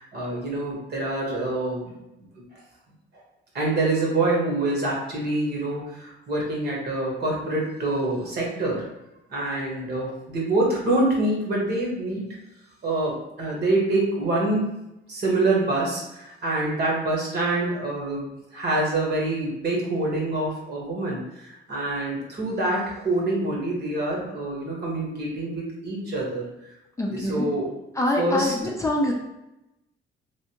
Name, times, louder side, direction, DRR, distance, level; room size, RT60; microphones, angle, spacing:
voice 1, 0.0-1.9 2.4-2.5 3.5-8.9 9.3-12.4 12.8-14.7 15.1-26.4 27.0-27.8 28.2-28.5, right 2 dB, 55° right, -3 dB, 1.3 m, -26 dB
voice 2, 27.0-27.5 28.0-29.1, left 1 dB, 15° left, -1 dB, 0.5 m, -25 dB
3.3 x 2.5 x 2.9 m, 0.91 s
cardioid pair, 90°, 20 cm